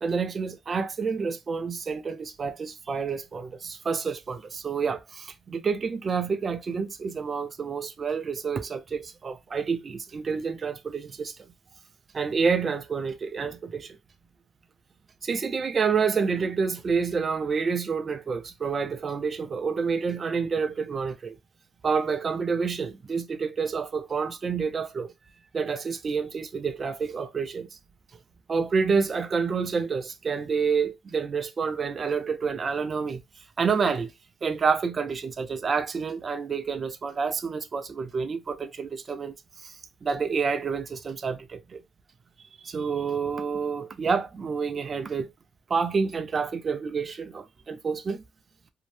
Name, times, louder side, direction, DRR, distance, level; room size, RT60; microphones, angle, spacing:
voice 1, 0.0-11.3 12.1-14.0 15.2-21.4 21.8-25.1 25.5-27.8 28.5-33.2 33.6-34.1 34.4-41.8 42.6-45.3 45.7-48.2, right 5 dB, 40° right, 0.4 m, -28 dB
2.6 x 2.0 x 3.1 m
cardioid pair, 90°, 0 cm